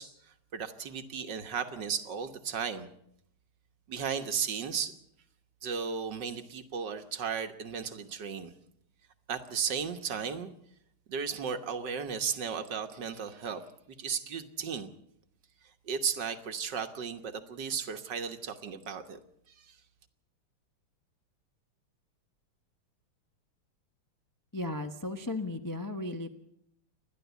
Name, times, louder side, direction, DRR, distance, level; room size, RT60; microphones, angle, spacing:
voice 1, 0.0-2.9 3.9-5.0 5.6-8.5 9.3-10.5 11.1-13.6 14.0-14.9 15.9-19.2 19.5-19.8, right 6 dB, 55° right, 8 dB, 1.8 m, -35 dB
voice 2, 24.5-26.3, left 2 dB, 15° left, 5 dB, 0.6 m, -35 dB
29.0 x 11.5 x 8.2 m, 0.74 s
omnidirectional pair, 2.4 m